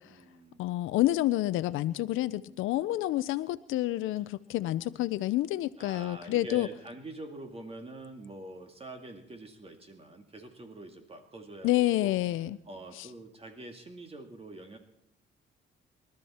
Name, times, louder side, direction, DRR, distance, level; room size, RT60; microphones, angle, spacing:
voice 1, 0.1-0.7 2.3-2.7 4.2-4.3 5.8-12.2 12.7-14.8, right 2 dB, 30° right, 5 dB, 2.1 m, -46 dB
voice 2, 0.6-6.7 11.6-12.6 13.0-13.1, left 15 dB, 85° left, 15 dB, 0.5 m, -28 dB
24.0 x 13.0 x 4.3 m, 0.78 s
cardioid pair, 90°, 20 cm